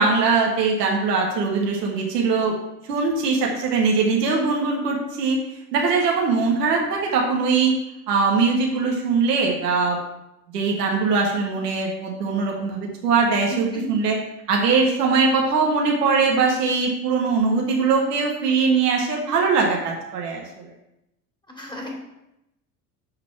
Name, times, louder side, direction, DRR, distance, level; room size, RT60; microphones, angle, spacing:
voice 1, 0.0-2.5 2.9-5.4 5.7-7.7 8.1-10.0 10.5-14.2 14.5-20.4, right 4 dB, 85° right, 0 dB, 1.6 m, -21 dB
voice 2, 13.5-13.9 21.5-21.9, left 3 dB, 10° left, 0 dB, 2.6 m, -34 dB
7.5 x 4.2 x 5.8 m, 0.87 s
hypercardioid pair, 70°, 47 cm